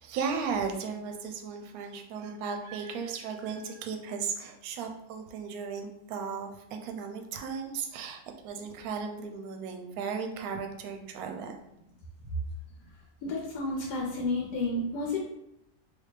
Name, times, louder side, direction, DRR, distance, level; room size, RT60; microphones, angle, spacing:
voice 1, 0.0-6.5 6.8-8.2 8.4-11.5, right 5 dB, 75° right, 5 dB, 1.0 m, -35 dB
voice 2, 13.2-15.2, left 2 dB, 90° left, -1 dB, 1.2 m, -31 dB
3.3 x 2.7 x 3.2 m, 0.82 s
omnidirectional pair, 1.7 m